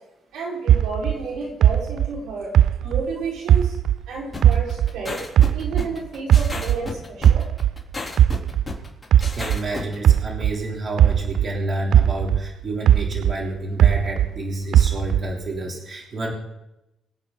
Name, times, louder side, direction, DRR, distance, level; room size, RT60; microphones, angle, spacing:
voice 1, 0.3-2.5 2.8-3.8 4.1-5.2 5.5-7.4, right 3 dB, 85° right, -3 dB, 5.0 m, -31 dB
sound 1, 0.7-4.1 4.4-6.9 7.2-11.6 11.9-14.4 14.7-15.4, right 11 dB, 70° right, 0.4 m, -18 dB
sound 2, 4.3-10.0, left 3 dB, 15° left, 3.5 m, -32 dB
voice 2, 9.4-16.3, right 1 dB, 40° right, -1 dB, 3.5 m, -29 dB
25.0 x 8.4 x 4.0 m, 0.90 s
cardioid pair, 90°, 0 cm